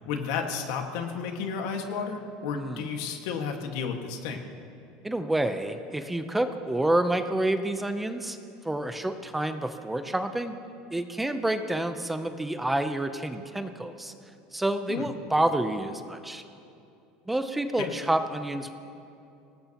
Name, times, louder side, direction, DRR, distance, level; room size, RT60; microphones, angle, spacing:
voice 1, 0.0-4.4 14.9-15.1 17.8-17.9, left 6 dB, 75° left, 3 dB, 1.7 m, -32 dB
voice 2, 2.5-2.9 5.0-8.4 8.6-10.6 10.9-14.1 14.5-16.4 17.3-18.7, right 1 dB, 5° right, 8 dB, 0.6 m, -28 dB
24.5 x 18.5 x 3.0 m, 2.6 s
supercardioid pair, 135°, 2 cm